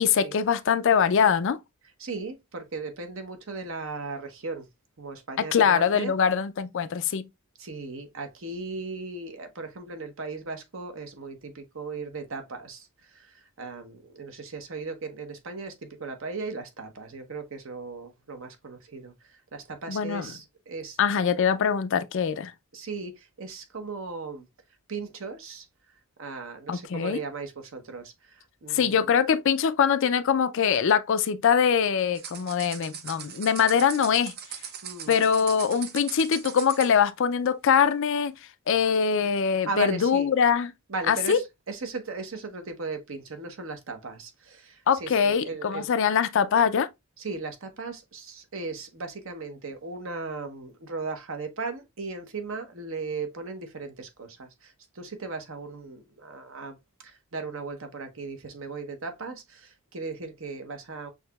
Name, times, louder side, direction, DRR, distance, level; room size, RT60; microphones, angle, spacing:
voice 1, 0.0-1.6 5.4-7.3 19.9-20.3 21.0-22.5 26.7-27.2 28.7-34.3 35.1-38.3 38.7-40.7 41.1-41.4 44.9-46.9, left 7 dB, 60° left, 0.4 m, -23 dB
voice 2, 1.8-4.7 5.0-6.1 7.6-21.3 22.7-24.5 24.9-25.7 26.2-29.2 34.8-35.3 38.8-38.9 39.7-40.3 40.9-45.9 47.2-56.8 57.0-61.1, right 4 dB, 65° right, 1.0 m, -37 dB
sound 1, 32.1-37.0, right 8 dB, 45° right, 0.6 m, -40 dB
6.2 x 2.8 x 2.3 m
head